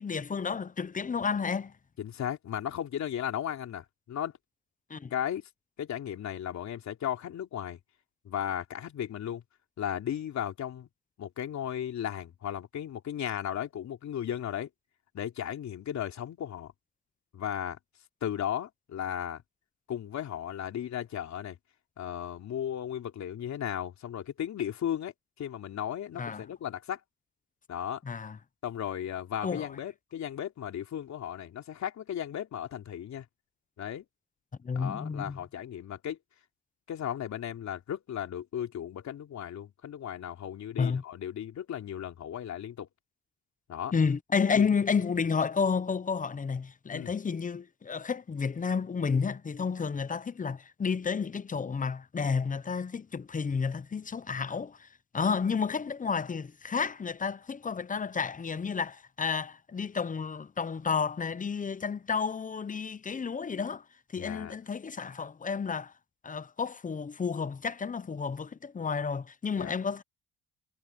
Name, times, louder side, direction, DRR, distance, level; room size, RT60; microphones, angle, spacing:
voice 1, 0.0-1.7 4.9-5.1 26.2-26.4 28.0-28.4 29.4-29.7 34.6-35.4 40.8-41.0 43.9-54.9 55.1-63.8 64.1-65.9 66.2-70.0, left 5 dB, 25° left, 0.9 m, -31 dB
voice 2, 2.0-4.3 5.1-5.5 5.8-7.8 8.3-9.4 9.8-10.9 11.2-14.7 15.1-16.7 17.3-17.8 18.2-19.4 19.9-21.6 22.0-27.0 27.7-28.0 28.6-33.3 33.8-34.0 34.8-36.2 36.9-42.9 43.7-43.9 44.6-44.7 46.9-47.1 64.2-64.6 69.6-69.7, left 10 dB, 65° left, 3.4 m, -35 dB
cardioid pair, 90°, 30 cm